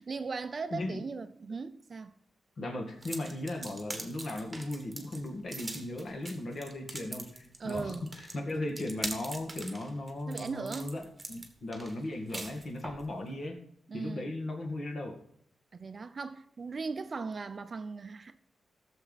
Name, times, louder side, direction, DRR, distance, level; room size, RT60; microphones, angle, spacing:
voice 1, 0.0-2.1 7.6-8.1 10.3-11.0 13.9-14.3 15.7-18.4, right 4 dB, 40° right, 0.6 m, -38 dB
voice 2, 0.7-1.0 2.6-13.6 13.9-15.2, left 1 dB, 50° left, 2.0 m, -37 dB
sound 1, 3.0-13.1, right 2 dB, 15° right, 1.5 m, -43 dB
15.5 x 7.1 x 4.1 m
wide cardioid pair, 150°, 0 cm